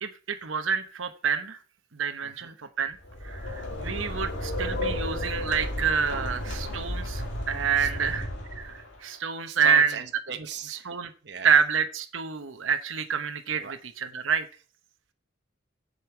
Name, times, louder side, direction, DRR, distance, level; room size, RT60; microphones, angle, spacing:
voice 1, 0.0-1.6 1.9-3.0 3.2-8.3 8.6-9.9 10.9-11.1 11.4-13.7 14.0-14.5, right 6 dB, 90° right, 1.0 m, -27 dB
voice 2, 2.2-2.6 7.8-8.3 9.5-10.9 11.2-11.5 13.6-13.7, right 5 dB, 60° right, 1.0 m, -38 dB
Wind and fire, 2.9-9.0, left 1 dB, 65° left, 2.5 m, -33 dB
7.8 x 5.5 x 7.1 m
head